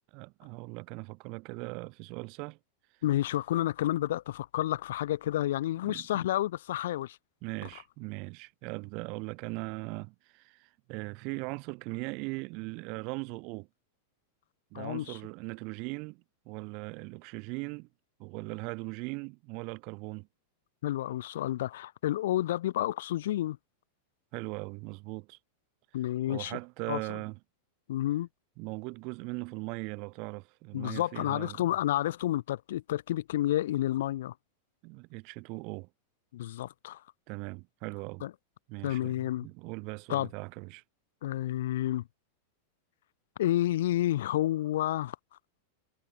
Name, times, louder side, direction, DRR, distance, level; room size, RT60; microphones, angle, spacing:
voice 1, 0.1-2.6 5.8-6.2 7.4-13.7 14.7-17.9 18.2-20.3 24.3-25.4 26.3-27.4 28.6-31.7 34.8-35.9 37.3-38.2 38.7-40.8, right 30 dB, 45° right, 6.9 m, -39 dB
voice 2, 3.0-7.2 14.7-15.2 20.8-23.6 25.9-26.6 26.9-27.0 27.9-28.3 30.7-34.3 36.3-37.0 38.2-38.3 38.8-39.5 40.1-40.3 41.2-42.0 43.4-45.2, left 13 dB, 55° left, 2.4 m, -30 dB
figure-of-eight pair, 90°, 0 cm